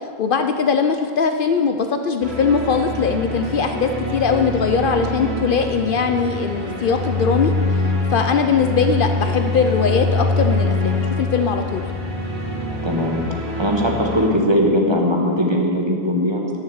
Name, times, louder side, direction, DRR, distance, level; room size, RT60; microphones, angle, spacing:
voice 1, 0.2-7.8 8.1-11.8, left 5 dB, 60° left, 6 dB, 0.7 m, -20 dB
sound 1, 2.2-14.3, left 2 dB, 80° right, 3.6 m, -24 dB
voice 2, 12.8-16.5, equal, 25° right, 0 dB, 1.3 m, -20 dB
10.0 x 6.7 x 8.0 m, 2.2 s
omnidirectional pair, 1.0 m